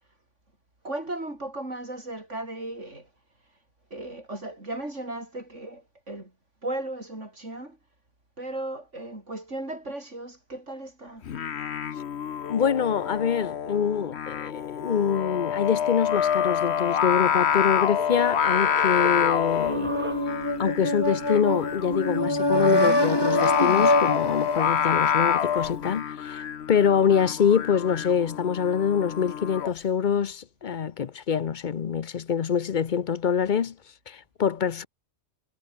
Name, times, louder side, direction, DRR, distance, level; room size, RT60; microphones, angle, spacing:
voice 1, 0.8-3.1 3.9-6.3 6.6-7.8 8.4-11.2, right 2 dB, 85° right, 7.0 m, -36 dB
Singing, 11.2-29.7, left 8 dB, 65° left, 1.2 m, -27 dB
voice 2, 12.5-19.9 20.6-33.7 34.1-34.9, left 7 dB, 50° left, 0.8 m, -25 dB
sound 1, 17.0-20.7, right 1 dB, 10° right, 1.7 m, -38 dB
sound 2, 19.6-25.5, left 1 dB, 20° left, 3.1 m, -25 dB
omnidirectional pair, 1.2 m